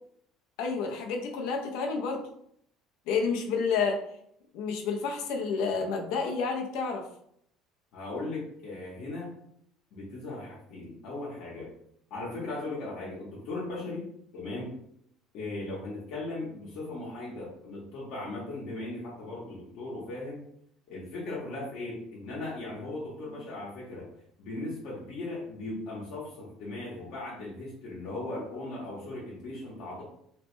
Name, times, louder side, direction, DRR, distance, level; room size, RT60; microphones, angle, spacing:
voice 1, 0.6-2.2 3.1-4.0 4.5-7.0, left 5 dB, 75° left, 2 dB, 0.5 m, -29 dB
voice 2, 7.9-9.4 9.9-11.7 12.1-14.1 14.3-14.8 15.3-20.4 20.9-24.1 24.4-30.0, left 2 dB, 55° left, -6 dB, 0.9 m, -38 dB
3.1 x 2.1 x 3.0 m, 0.70 s
cardioid pair, 165°, 0 cm